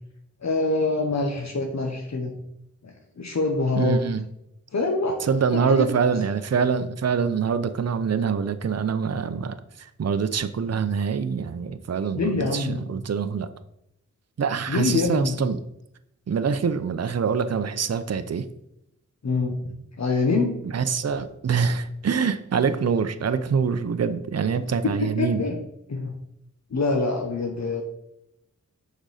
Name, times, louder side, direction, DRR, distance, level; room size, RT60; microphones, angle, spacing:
voice 1, 0.4-2.4 2.8-4.0 4.7-5.9 12.1-12.9 14.7-15.4 19.2-19.6 20.0-20.5 24.6-25.6 25.9-26.1 26.7-27.8, left 3 dB, 60° left, 2 dB, 1.0 m, -25 dB
voice 2, 3.8-4.2 5.2-13.5 14.4-15.6 16.3-18.5 20.6-25.4, right 6 dB, 55° right, 10 dB, 0.6 m, -25 dB
6.4 x 5.1 x 4.9 m, 0.81 s
wide cardioid pair, 65°, 31 cm